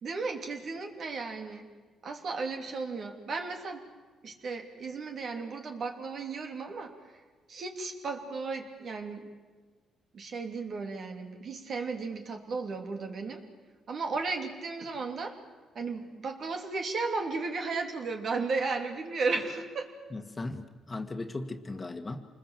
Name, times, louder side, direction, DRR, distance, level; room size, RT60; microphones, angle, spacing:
voice 1, 0.0-1.7 2.0-3.8 4.2-6.9 7.5-9.3 10.1-13.4 13.9-15.4 15.7-19.9, right 4 dB, 55° right, 4 dB, 3.0 m, -34 dB
voice 2, 20.1-22.3, left 2 dB, 25° left, 6 dB, 1.8 m, -37 dB
27.0 x 20.5 x 7.6 m, 1.4 s
cardioid pair, 90°, 0 cm